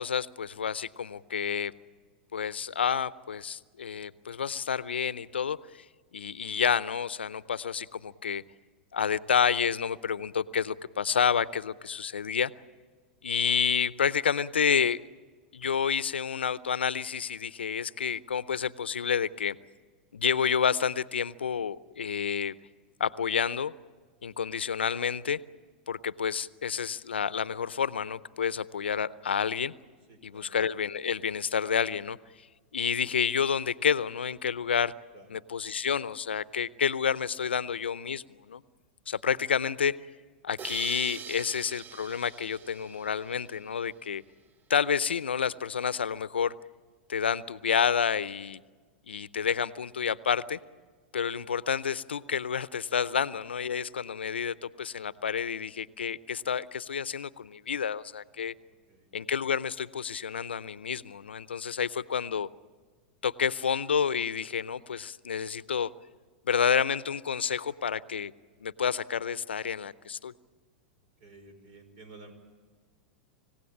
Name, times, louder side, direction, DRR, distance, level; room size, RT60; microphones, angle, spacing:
voice 1, 0.0-1.7 2.3-5.8 6.1-8.4 8.9-12.5 13.2-15.0 15.5-19.6 20.1-22.5 23.0-23.7 24.2-25.4 25.9-29.7 30.2-32.2 32.7-34.9 35.3-38.6 39.1-40.0 40.4-44.2 44.7-46.5 47.1-48.6 49.1-50.6 51.1-58.5 59.1-62.5 63.2-65.9 66.5-68.3 68.6-70.3, left 7 dB, 90° left, 18 dB, 0.6 m, -29 dB
voice 2, 30.1-30.6 35.1-35.3 58.7-59.1 71.2-72.3, right 3 dB, 60° right, 9 dB, 5.2 m, -52 dB
sound 1, 40.6-43.9, right 6 dB, 30° right, 0.7 m, -44 dB
26.5 x 17.0 x 8.7 m, 1.5 s
hypercardioid pair, 105°, 6 cm